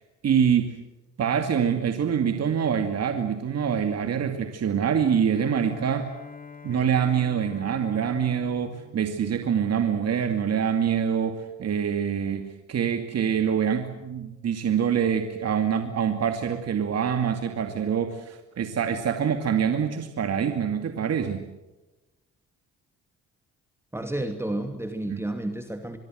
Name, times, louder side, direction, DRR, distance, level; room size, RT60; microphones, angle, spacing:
voice 1, 0.2-0.7 1.2-6.1 6.6-21.4 25.1-25.2, right 7 dB, 55° right, 6 dB, 2.5 m, -25 dB
Bowed string instrument, 5.3-10.0, left 5 dB, 30° left, 4.7 m, -45 dB
voice 2, 23.9-26.0, right 1 dB, 10° right, 6 dB, 2.6 m, -31 dB
24.0 x 23.0 x 7.9 m, 1.0 s
cardioid pair, 90°, 30 cm